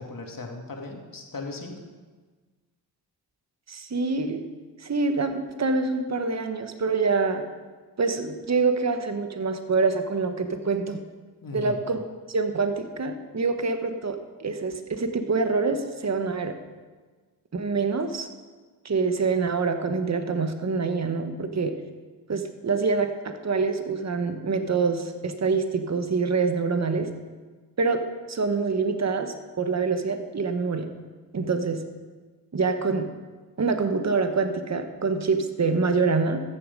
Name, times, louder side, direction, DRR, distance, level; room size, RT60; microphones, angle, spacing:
voice 1, 0.0-1.8 11.4-11.8, left 2 dB, 50° left, 2 dB, 2.2 m, -37 dB
voice 2, 3.7-4.4 4.8-7.4 8.0-11.0 11.5-12.0 12.3-16.5 17.5-18.3 18.8-21.7 22.3-27.1 27.8-28.0 28.3-30.9 31.3-31.8 32.5-33.1 33.6-36.4, right 4 dB, 40° right, 7 dB, 1.2 m, -25 dB
14.0 x 7.2 x 5.3 m, 1.4 s
cardioid pair, 55°, 43 cm